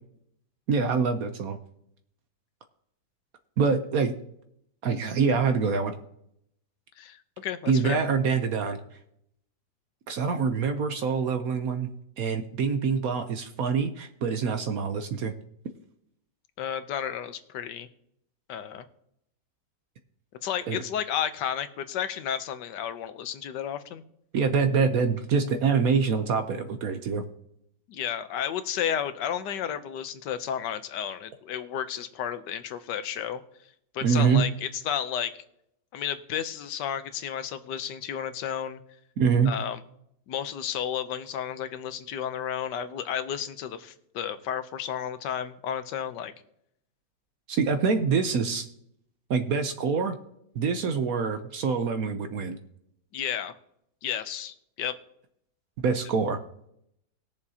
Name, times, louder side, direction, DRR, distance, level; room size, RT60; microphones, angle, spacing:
voice 1, 0.7-1.6 3.6-4.1 4.8-5.9 7.7-8.8 10.1-11.9 12.2-15.3 20.7-20.8 24.3-27.2 34.0-34.5 39.2-39.5 47.5-48.7 49.3-50.2 50.5-52.6 55.8-56.4, right 5 dB, 65° right, 8 dB, 1.1 m, -25 dB
voice 2, 7.0-8.0 16.6-17.9 18.5-18.8 20.4-24.0 27.9-33.4 33.9-35.3 35.9-38.8 39.5-39.8 40.3-46.3 53.1-53.5 54.0-55.0, left 9 dB, 85° left, 11 dB, 1.4 m, -32 dB
20.5 x 6.9 x 2.8 m, 0.74 s
omnidirectional pair, 1.8 m